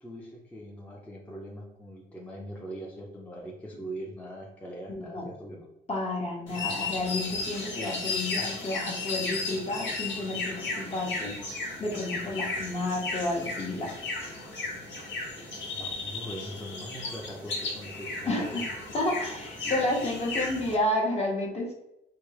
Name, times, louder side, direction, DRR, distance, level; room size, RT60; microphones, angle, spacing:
voice 1, 0.0-5.6 15.7-18.7, right 1 dB, 5° left, -3 dB, 0.6 m, -41 dB
voice 2, 4.9-5.3 5.9-11.4 11.8-13.9 18.3-18.6 18.9-21.7, left 1 dB, 30° left, -2 dB, 0.9 m, -31 dB
sound 1, 6.5-20.7, left 3 dB, 75° left, 1.0 m, -35 dB
3.3 x 2.2 x 3.2 m, 0.89 s
cardioid pair, 90°, 20 cm